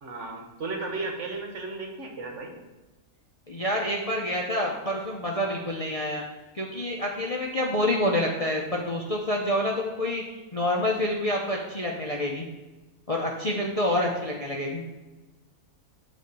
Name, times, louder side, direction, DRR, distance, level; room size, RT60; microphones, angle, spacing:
voice 1, 0.0-2.5, right 3 dB, 55° right, 1 dB, 1.5 m, -34 dB
voice 2, 3.5-6.2 6.5-10.2 10.5-12.5 13.1-14.9, left 1 dB, 35° left, -1 dB, 0.6 m, -27 dB
9.6 x 3.3 x 6.8 m, 1.2 s
omnidirectional pair, 1.6 m